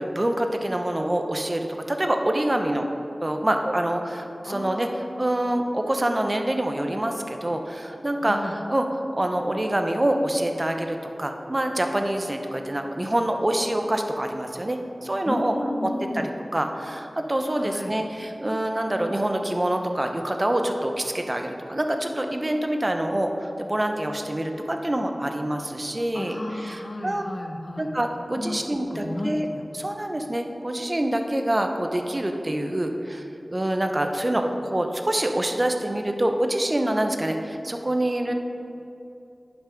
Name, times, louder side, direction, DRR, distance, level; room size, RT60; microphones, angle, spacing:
voice 1, 0.0-2.8 3.2-15.5 16.1-16.2 16.5-27.2 27.8-29.5 29.7-33.2 33.5-38.3, right 1 dB, 35° right, 5 dB, 0.8 m, -26 dB
voice 2, 4.5-5.5 8.2-8.6 15.3-16.3 17.6-17.9 26.1-28.0 28.4-28.6 28.9-29.6, left 1 dB, 50° left, 4 dB, 0.9 m, -33 dB
10.5 x 6.1 x 5.2 m, 2.8 s
wide cardioid pair, 45°, 0 cm